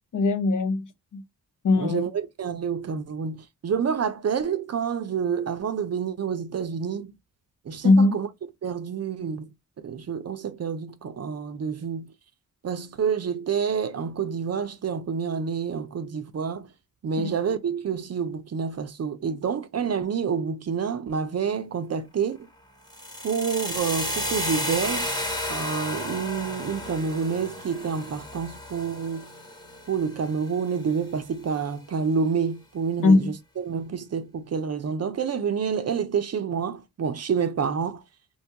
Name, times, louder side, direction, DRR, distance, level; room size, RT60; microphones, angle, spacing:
voice 1, 0.1-1.2 1.6-2.0 7.8-8.2 17.2-17.3 33.0-33.4, left 3 dB, 55° left, 0.7 m, -20 dB
voice 2, 1.8-7.1 7.7-8.3 8.6-9.5 9.8-12.1 12.6-16.7 17.0-22.4 23.2-25.2 25.5-29.3 29.9-33.2 33.7-38.0, right 6 dB, 45° right, 0.5 m, -28 dB
sound 1, 22.9-30.9, left 1 dB, 10° left, 0.8 m, -33 dB
2.9 x 2.2 x 2.7 m
cardioid pair, 65°, 37 cm